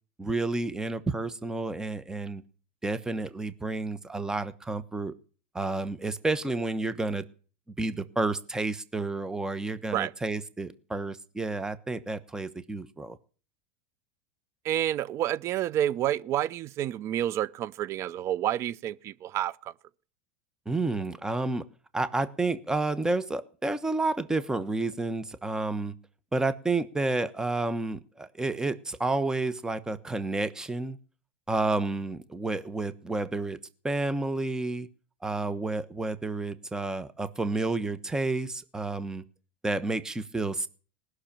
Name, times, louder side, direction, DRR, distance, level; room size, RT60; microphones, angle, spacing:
voice 1, 0.2-2.4 2.8-5.1 5.5-7.2 7.8-13.2 20.7-21.6 21.9-25.9 26.3-31.0 31.5-33.6 33.8-34.9 35.2-39.2 39.6-40.7, right 2 dB, 10° right, 1.1 m, -30 dB
voice 2, 14.6-19.7, right 12 dB, 45° right, 0.6 m, -29 dB
19.5 x 6.6 x 8.7 m
hypercardioid pair, 105°, 7 cm